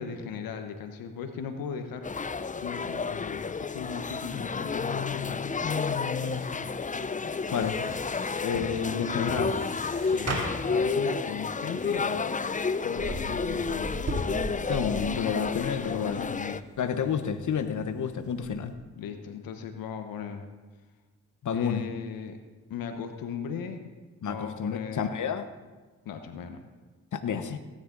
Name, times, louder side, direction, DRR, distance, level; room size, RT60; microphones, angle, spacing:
voice 1, 0.0-2.1 2.6-5.6 8.8-9.4 10.0-10.3 10.7-12.4 12.8-14.0 15.8-17.1 18.9-20.5 21.5-22.4 22.7-23.9 24.2-25.1 26.0-26.6, left 6 dB, 80° left, 7 dB, 1.1 m, -38 dB
sound 1, 2.0-16.6, left 4 dB, 25° left, 0.6 m, -31 dB
voice 2, 4.8-6.6 7.5-7.8 8.4-9.5 14.7-16.2 16.8-18.7 21.4-21.8 24.2-25.4 27.1-27.6, left 7 dB, 60° left, 9 dB, 1.1 m, -30 dB
sound 2, 6.2-18.7, right 1 dB, 45° right, 3.0 m, -40 dB
17.5 x 10.0 x 4.0 m, 1.3 s
supercardioid pair, 45°, 34 cm